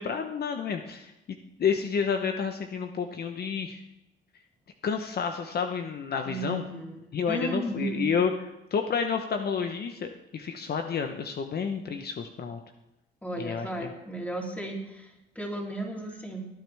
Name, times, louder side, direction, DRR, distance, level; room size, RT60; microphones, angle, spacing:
voice 1, 0.0-3.8 4.8-6.6 7.1-8.3 8.7-12.6 13.4-13.9, left 6 dB, 55° left, 6 dB, 1.0 m, -30 dB
voice 2, 6.2-8.1 13.2-16.5, right 2 dB, 5° left, -1 dB, 3.3 m, -35 dB
18.0 x 9.4 x 3.5 m, 0.90 s
cardioid pair, 90°, 20 cm